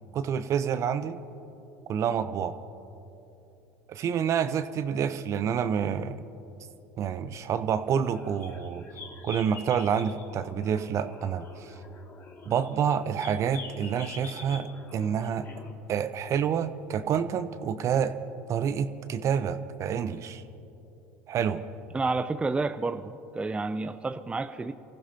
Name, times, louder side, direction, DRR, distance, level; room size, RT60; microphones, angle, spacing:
voice 1, 0.1-1.2 1.9-2.6 3.9-6.2 7.0-8.9 9.2-11.7 12.5-15.5 15.9-18.1 18.5-20.4 21.3-21.6, right 8 dB, 45° right, 12 dB, 0.8 m, -28 dB
sound 1, 7.7-15.7, left 4 dB, 35° left, 2.3 m, -46 dB
voice 2, 21.9-24.7, right 3 dB, 15° right, 10 dB, 0.5 m, -30 dB
30.0 x 15.0 x 2.9 m, 2.8 s
hypercardioid pair, 80°, 7 cm